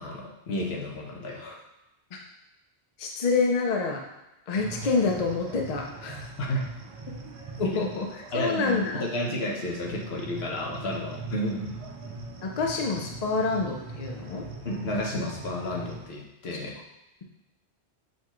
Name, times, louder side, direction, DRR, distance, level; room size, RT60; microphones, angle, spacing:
voice 1, 0.0-1.6 6.4-6.7 7.6-7.8 8.3-11.9 14.6-16.8, left 1 dB, 70° left, -1 dB, 1.1 m, -32 dB
voice 2, 3.0-4.0 4.5-6.3 7.6-8.1 8.3-9.0 12.4-14.5, left 4 dB, 45° left, 1 dB, 0.6 m, -27 dB
sound 1, 4.6-16.1, right 3 dB, 45° right, 0.4 m, -41 dB
6.5 x 2.3 x 3.0 m, 0.94 s
omnidirectional pair, 1.1 m